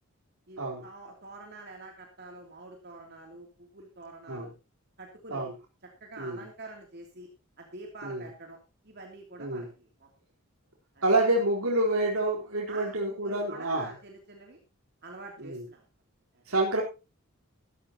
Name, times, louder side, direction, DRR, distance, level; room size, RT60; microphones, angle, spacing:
voice 1, 0.5-4.5 5.0-5.5 5.8-7.3 7.6-8.6 8.8-10.1 10.9-11.0 12.7-14.6 15.0-15.8 16.3-16.4, right 2 dB, 50° right, 1 dB, 2.9 m, -46 dB
voice 2, 11.0-13.9 15.4-15.6 16.5-16.8, right 2 dB, 80° right, -3 dB, 4.0 m, -27 dB
14.5 x 14.5 x 2.9 m, 0.28 s
head